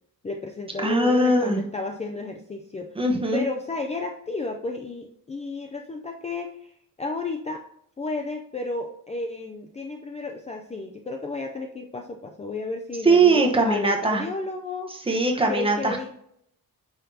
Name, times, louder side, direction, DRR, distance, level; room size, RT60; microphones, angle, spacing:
voice 1, 0.2-3.0 3.3-6.7 7.0-7.6 8.0-14.9 15.4-16.1, left 3 dB, 20° left, 3 dB, 0.4 m, -32 dB
voice 2, 0.8-1.6 2.9-3.4 13.0-14.2 15.1-16.1, right 2 dB, 15° right, 2 dB, 1.0 m, -20 dB
8.9 x 5.7 x 2.8 m, 0.72 s
wide cardioid pair, 175°, 35 cm